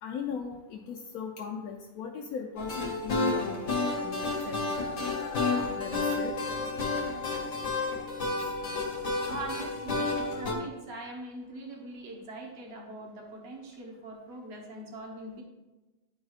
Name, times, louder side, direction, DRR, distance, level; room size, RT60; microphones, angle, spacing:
voice 1, 0.0-6.3 8.4-8.5, left 6 dB, 85° left, 1 dB, 1.1 m, -39 dB
sound 1, 2.6-10.5, left 3 dB, 60° left, 1.5 m, -31 dB
voice 2, 9.2-15.4, right 2 dB, 50° right, 0 dB, 1.3 m, -42 dB
10.5 x 4.8 x 2.4 m, 1.1 s
omnidirectional pair, 1.5 m